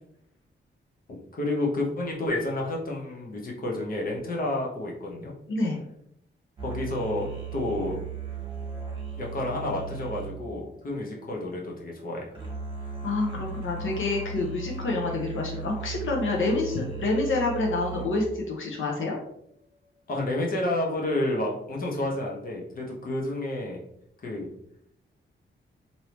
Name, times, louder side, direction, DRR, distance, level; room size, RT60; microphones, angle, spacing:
voice 1, 1.3-5.3 6.6-8.0 9.2-12.4 20.1-23.8 24.2-24.5, left 1 dB, 45° left, -2 dB, 0.9 m, -30 dB
voice 2, 5.5-5.8 13.0-19.2, left 2 dB, 80° left, 0 dB, 0.8 m, -28 dB
sound 1, 6.6-11.5 12.3-18.4, right 4 dB, 25° right, 1.1 m, -37 dB
3.3 x 2.7 x 2.9 m, 0.72 s
wide cardioid pair, 140°, 20 cm